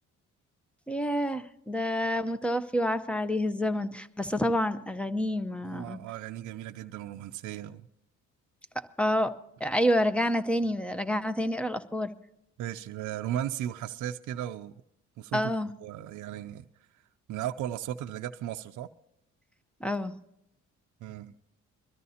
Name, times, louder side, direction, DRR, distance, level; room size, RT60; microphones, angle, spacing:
voice 1, 0.9-6.0 9.0-9.3 9.6-12.1 15.3-15.7 19.8-20.1, equal, 5° left, 0.7 m, -28 dB
voice 2, 5.6-7.8 12.6-14.7 15.2-15.5 15.8-16.7 17.3-18.9 21.0-21.3, right 11 dB, 80° right, 0.6 m, -36 dB
22.5 x 13.5 x 2.8 m
cardioid pair, 90°, 30 cm